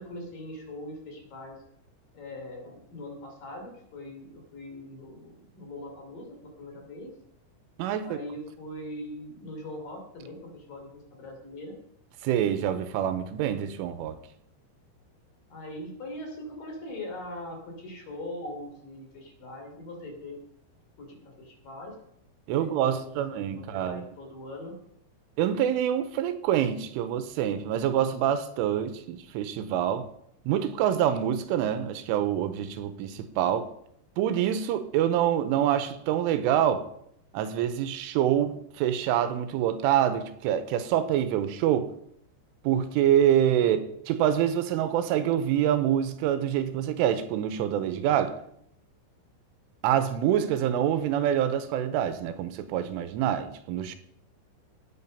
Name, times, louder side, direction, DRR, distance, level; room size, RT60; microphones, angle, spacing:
voice 1, 0.0-1.6 2.1-7.1 8.0-11.8 15.5-20.4 21.0-21.9 22.6-24.7 43.6-43.8, left 1 dB, 50° left, 4.4 m, -41 dB
voice 2, 7.8-8.2 12.2-14.2 22.5-24.1 25.4-30.1 30.5-33.7 34.2-36.9 37.3-41.9 42.6-43.8 44.1-48.4 49.8-54.0, right 10 dB, 85° right, 3.5 m, -26 dB
17.5 x 8.8 x 5.6 m
omnidirectional pair, 5.7 m